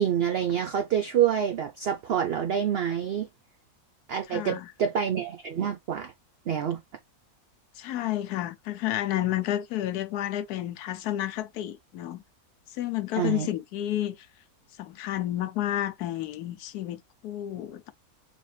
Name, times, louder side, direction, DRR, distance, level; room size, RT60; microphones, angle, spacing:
voice 1, 0.0-3.3 4.1-6.1 6.5-6.8 13.1-13.5, right 9 dB, 60° right, 0.6 m, -27 dB
voice 2, 4.3-4.7 7.8-12.2 12.7-14.2 14.8-17.9, left 13 dB, 90° left, 1.2 m, -31 dB
4.1 x 3.4 x 3.2 m
omnidirectional pair, 1.6 m